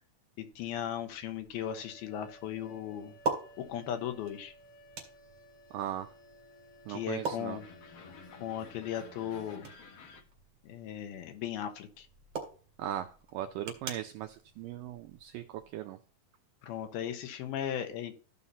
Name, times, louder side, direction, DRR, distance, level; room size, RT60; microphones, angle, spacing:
voice 1, 0.4-3.1 3.7-4.5 6.9-7.6 8.4-9.7 10.6-12.1 16.6-18.1, left 10 dB, 80° left, 2.9 m, -37 dB
sound 1, 0.5-15.7, right 3 dB, 45° right, 2.7 m, -44 dB
sound 2, 1.5-10.2, left 2 dB, 55° left, 1.8 m, -54 dB
voice 2, 5.7-6.1 6.9-7.6 12.8-16.0, right 11 dB, 80° right, 2.0 m, -38 dB
15.0 x 5.5 x 2.9 m
omnidirectional pair, 4.4 m